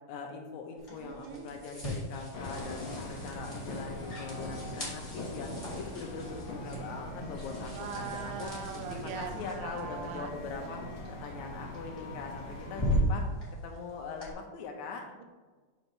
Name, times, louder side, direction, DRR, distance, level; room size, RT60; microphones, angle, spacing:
voice 1, 0.1-8.5 8.9-10.8 11.1-13.3 13.6-15.1, left 4 dB, 80° left, 3 dB, 1.7 m, -42 dB
sound 1, 0.8-14.3, equal, 15° left, 1.1 m, -39 dB
voice 2, 0.9-1.6 7.7-10.3, right 6 dB, 80° right, 5 dB, 2.4 m, -41 dB
sound 2, 2.3-13.0, left 1 dB, 50° left, 2.3 m, -42 dB
6.8 x 4.3 x 4.4 m, 1.4 s
omnidirectional pair, 4.1 m